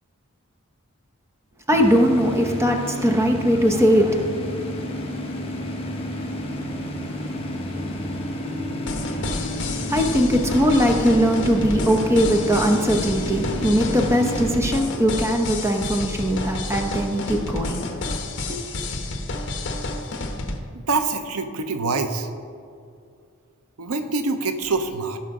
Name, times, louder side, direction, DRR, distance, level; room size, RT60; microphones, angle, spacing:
sound 1, 1.7-14.5, equal, 25° left, 1.2 m, -30 dB
voice 1, 1.7-4.2 9.9-17.8 18.5-18.6, equal, 15° right, 2 dB, 0.9 m, -20 dB
sound 2, 8.9-20.6, left 2 dB, 55° left, 1.1 m, -30 dB
voice 2, 20.7-22.3 23.8-25.2, right 3 dB, 85° right, 8 dB, 0.7 m, -25 dB
16.0 x 5.8 x 3.7 m, 2.3 s
head